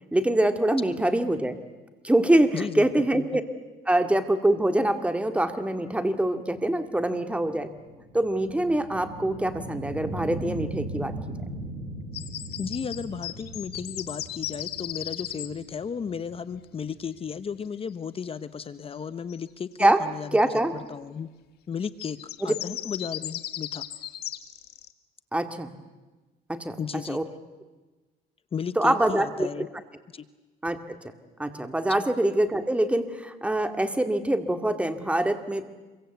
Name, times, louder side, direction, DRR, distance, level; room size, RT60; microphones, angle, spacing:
voice 1, 0.1-1.6 2.0-3.4 3.9-7.7 8.1-11.1 19.8-20.0 20.3-20.7 22.4-22.5 25.3-25.7 26.5-26.8 27.1-27.2 28.8-29.5 30.6-31.0 31.4-35.7, right 1 dB, 5° right, 7 dB, 2.2 m, -24 dB
voice 2, 2.5-3.4 12.6-21.3 21.7-22.2 22.4-23.8 26.8-27.2 28.5-29.7 30.1-30.3, left 6 dB, 35° left, 13 dB, 1.0 m, -34 dB
sound 1, 7.2-17.5, right 1 dB, 80° right, 7.9 m, -38 dB
sound 2, 12.1-15.5 19.3-19.4 21.8-24.9, left 13 dB, 70° left, 1.7 m, -36 dB
27.0 x 23.5 x 8.2 m, 1.2 s
cardioid pair, 110°, 17 cm